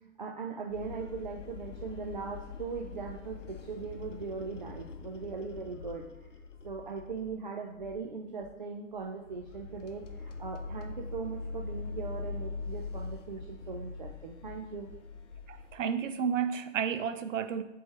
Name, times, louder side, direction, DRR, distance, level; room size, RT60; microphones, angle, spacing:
voice 1, 0.0-6.1 6.6-14.9, right 4 dB, 40° right, 0.4 m, -39 dB
sound 1, 0.7-7.4 7.8-8.1 8.4-8.5 9.0-15.7, left 4 dB, 75° left, 0.8 m, -43 dB
voice 2, 15.5-17.6, right 7 dB, 80° right, 0.6 m, -31 dB
8.4 x 3.6 x 3.2 m
hypercardioid pair, 175°, 37 cm